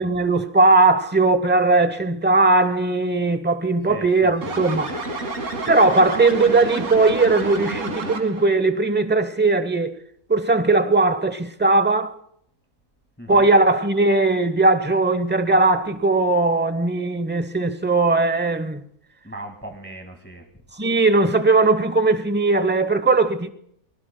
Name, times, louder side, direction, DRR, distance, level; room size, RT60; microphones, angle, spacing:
voice 1, 0.0-4.9 5.7-9.9 10.3-12.1 13.3-18.8 20.8-23.5, right 3 dB, 10° right, 0.5 m, -18 dB
voice 2, 3.8-4.6 13.2-13.5 19.2-20.4, right 1 dB, 5° left, 1.8 m, -38 dB
sound 1, 4.4-8.5, right 3 dB, 55° right, 2.2 m, -29 dB
24.0 x 19.5 x 2.2 m
omnidirectional pair, 1.6 m